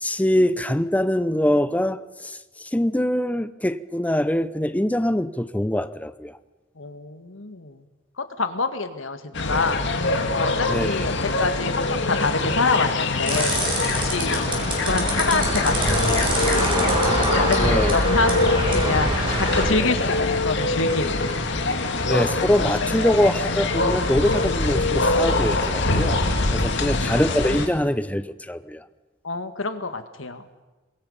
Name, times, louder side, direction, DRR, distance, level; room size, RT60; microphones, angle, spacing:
voice 1, 0.0-6.4 10.7-10.9 17.6-17.9 19.7-19.9 22.1-26.2 26.5-28.8, left 1 dB, 10° left, 13 dB, 0.7 m, -23 dB
voice 2, 6.8-7.9 8.2-9.9 10.3-11.1 11.4-16.9 17.2-21.2 26.7-27.0 29.2-30.4, left 3 dB, 85° left, 9 dB, 1.8 m, -27 dB
sound 1, 9.3-27.7, left 2 dB, 65° left, 2.1 m, -24 dB
sound 2, 13.3-19.7, right 1 dB, 25° right, 6.2 m, -24 dB
27.5 x 22.0 x 5.6 m, 1.2 s
head